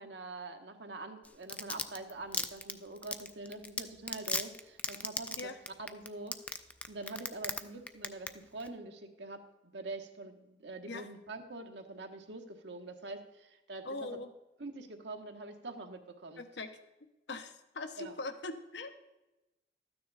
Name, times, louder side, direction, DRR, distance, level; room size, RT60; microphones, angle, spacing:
voice 1, 0.0-5.5 5.8-6.3 6.9-14.1 14.6-16.4 18.0-18.2, right 2 dB, 80° right, 4 dB, 1.2 m, -45 dB
Domestic sounds home sounds, 1.2-7.6 7.9-8.3 8.6-8.7, left 3 dB, 10° left, 0.4 m, -35 dB
voice 2, 13.8-14.3 16.4-16.7 17.3-19.0, left 3 dB, 80° left, 8 dB, 1.0 m, -41 dB
13.0 x 9.4 x 4.1 m, 1.0 s
head